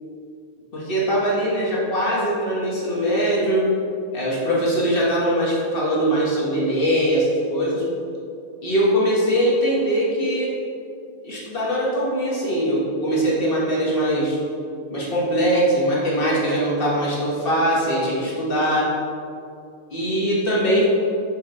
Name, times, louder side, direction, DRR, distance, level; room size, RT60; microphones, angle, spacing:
voice 1, 0.7-3.7 4.1-7.8 8.6-10.5 11.2-14.4 14.9-18.9 19.9-20.9, equal, 30° left, -5 dB, 1.2 m, -21 dB
6.4 x 4.4 x 4.3 m, 2.5 s
omnidirectional pair, 2.3 m